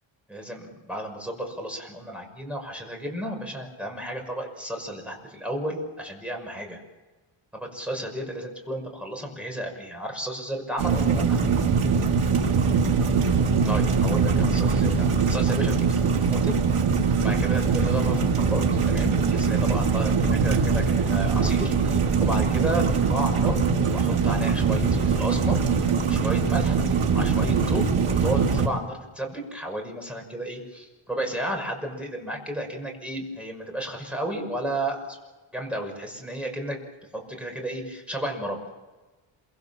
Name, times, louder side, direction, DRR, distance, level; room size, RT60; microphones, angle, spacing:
voice 1, 0.3-6.8 7.5-11.4 13.6-16.6 17.2-23.6 23.9-35.2 35.5-36.8 37.1-38.6, right 1 dB, ahead, 2 dB, 6.0 m, -33 dB
sound 1, 10.8-28.7, right 5 dB, 85° right, 3.1 m, -22 dB
27.0 x 24.5 x 7.2 m, 1.3 s
wide cardioid pair, 135°, 49 cm